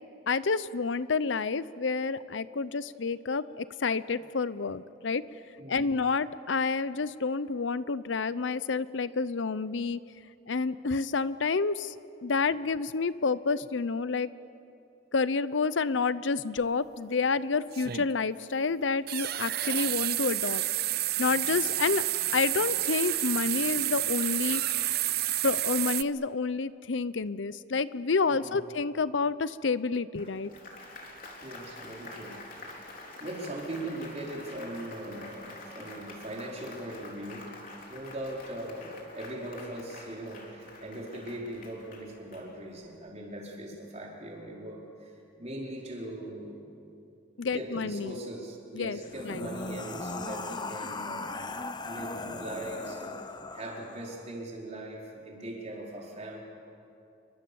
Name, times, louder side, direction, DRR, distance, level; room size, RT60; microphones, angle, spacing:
voice 1, 0.3-5.2 5.7-10.0 10.5-12.0 12.2-14.3 15.1-20.6 21.2-22.0 22.3-24.6 25.4-30.5 47.4-48.2 48.7-49.0 49.2-49.5, left 4 dB, 80° left, 16 dB, 0.7 m, -29 dB
voice 2, 5.6-5.9 28.3-28.6 31.4-32.5 33.2-37.6 37.9-46.6 47.4-51.3 51.8-56.4, right 1 dB, 35° right, -2 dB, 4.7 m, -40 dB
sound 1, 16.6-16.7 17.7-18.1 19.1-26.0, right 14 dB, 55° right, 0.6 m, -30 dB
Applause, 30.1-42.9, left 2 dB, 50° left, 3.9 m, -47 dB
sound 2, 49.0-54.3, left 3 dB, 25° left, 0.9 m, -38 dB
28.0 x 23.5 x 7.1 m, 2.7 s
head